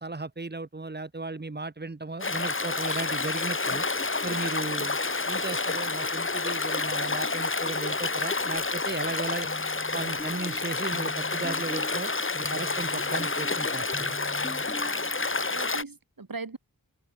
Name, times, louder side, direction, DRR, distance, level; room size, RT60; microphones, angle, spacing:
voice 1, 0.0-3.8 4.2-5.0 5.3-9.5 9.9-14.2, right 3 dB, 25° right, 1.3 m, -36 dB
Stream, 2.2-15.8, left 3 dB, 35° left, 1.4 m, -29 dB
Cough, 8.4-11.2, right 4 dB, 85° right, 6.7 m, -57 dB
sound 1, 9.4-15.4, left 1 dB, 15° left, 1.3 m, -43 dB
voice 2, 14.7-15.1 15.5-16.6, right 3 dB, 65° right, 5.9 m, -39 dB
wide cardioid pair, 60°, 37 cm